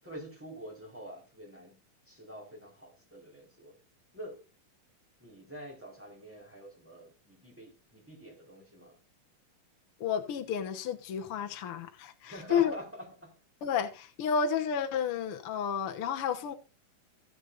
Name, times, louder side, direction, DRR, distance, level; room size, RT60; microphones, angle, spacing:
voice 1, 0.0-1.8 2.0-3.8 4.1-4.5 5.2-9.0 12.2-13.4, equal, 5° right, 4.4 m, -46 dB
voice 2, 10.0-12.7 13.6-16.5, left 7 dB, 60° left, 1.5 m, -31 dB
16.5 x 8.1 x 2.6 m
omnidirectional pair, 3.9 m